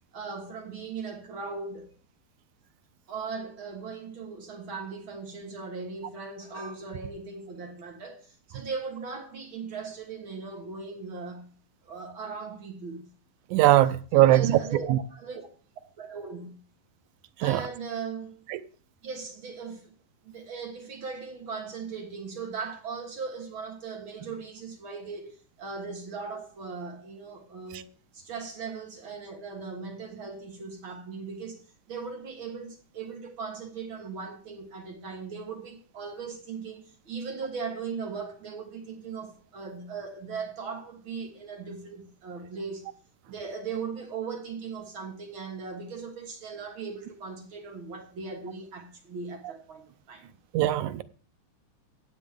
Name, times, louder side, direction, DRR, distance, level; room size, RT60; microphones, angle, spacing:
voice 1, 0.1-1.9 3.1-11.5 11.8-13.1 14.1-15.5 16.0-16.6 17.4-18.5 19.0-19.9 20.2-27.9 28.1-42.9 43.3-50.3, right 5 dB, 50° right, 1.9 m, -38 dB
voice 2, 13.5-14.6 14.9-15.0 17.4-17.6 50.5-51.0, right 14 dB, 85° right, 2.1 m, -20 dB
15.0 x 8.2 x 3.6 m
omnidirectional pair, 3.4 m